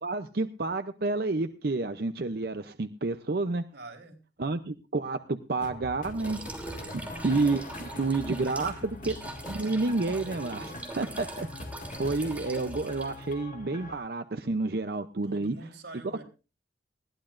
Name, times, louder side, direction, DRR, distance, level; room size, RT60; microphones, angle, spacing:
voice 1, 0.0-3.6 4.4-6.4 7.2-9.2 9.5-11.5 12.0-15.6 16.0-16.2, right 3 dB, 60° right, 9 dB, 0.6 m, -30 dB
voice 2, 3.7-4.2 8.5-8.8 10.5-11.0 15.2-16.2, right 2 dB, 85° right, 3 dB, 3.7 m, -47 dB
sound 1, 5.6-13.9, left 1 dB, 45° left, 1.9 m, -42 dB
sound 2, 6.1-13.3, right 1 dB, 10° right, 3.1 m, -43 dB
20.5 x 16.0 x 2.6 m, 0.32 s
head